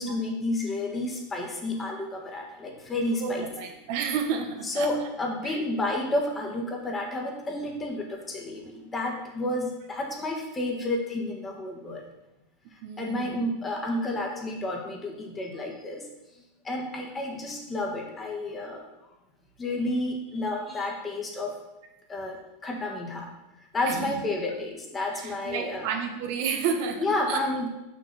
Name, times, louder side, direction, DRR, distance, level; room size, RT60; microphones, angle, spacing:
voice 1, 0.0-3.5 4.6-12.0 13.0-16.1 16.6-18.8 19.6-21.6 22.1-23.3 23.7-25.9 27.0-27.7, left 2 dB, 20° left, 1 dB, 1.6 m, -31 dB
voice 2, 3.2-5.1 5.4-5.6 12.8-13.4 23.9-24.3 25.1-27.0 27.3-27.4, right 6 dB, 60° right, 4 dB, 1.0 m, -31 dB
6.3 x 5.5 x 4.3 m, 0.98 s
hypercardioid pair, 110°, 0 cm